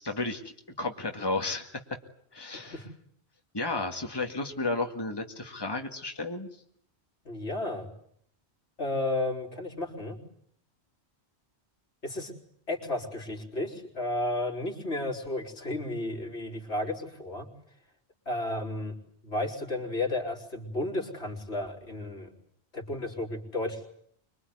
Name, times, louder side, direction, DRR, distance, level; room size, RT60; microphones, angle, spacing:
voice 1, 0.0-1.8 2.3-2.8 3.5-6.5, left 2 dB, 20° left, 3 dB, 2.1 m, -33 dB
voice 2, 7.3-7.9 8.8-10.2 12.0-12.3 12.7-17.5 18.3-18.9 19.2-22.3 22.7-23.9, left 2 dB, 75° left, 0 dB, 4.3 m, -33 dB
26.0 x 22.5 x 9.6 m, 0.66 s
omnidirectional pair, 1.1 m